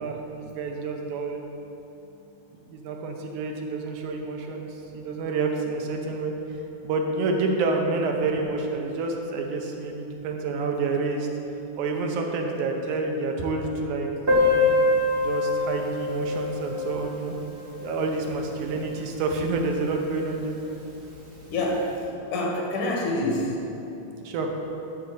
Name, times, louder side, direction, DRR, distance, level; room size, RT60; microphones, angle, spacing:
voice 1, 0.0-1.4 2.7-4.7 4.9-6.4 6.8-11.3 11.8-14.7 15.2-17.4 17.8-20.5 24.2-24.5, right 3 dB, 80° right, 2 dB, 2.3 m, -28 dB
Piano, 14.3-19.6 19.9-20.0 20.2-20.4 20.7-20.8 21.5-21.7, left 2 dB, 45° right, 0.6 m, -26 dB
voice 2, 21.5-23.6, left 1 dB, 75° left, -2 dB, 2.9 m, -27 dB
11.5 x 4.1 x 6.6 m, 2.8 s
omnidirectional pair, 3.5 m